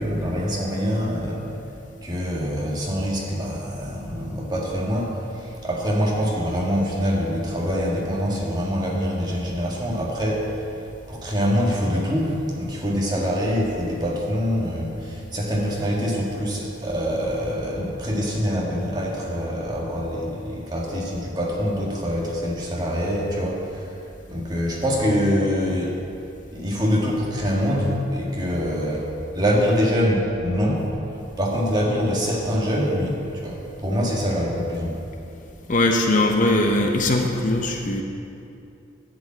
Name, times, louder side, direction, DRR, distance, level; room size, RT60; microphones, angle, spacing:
voice 1, 0.0-1.5 2.0-10.6 11.1-24.0 24.3-26.0 26.5-29.1 29.3-35.0, equal, 20° right, -4 dB, 1.7 m, -25 dB
voice 2, 35.7-38.0, left 2 dB, 40° left, 3 dB, 0.7 m, -20 dB
11.0 x 5.2 x 8.5 m, 2.7 s
head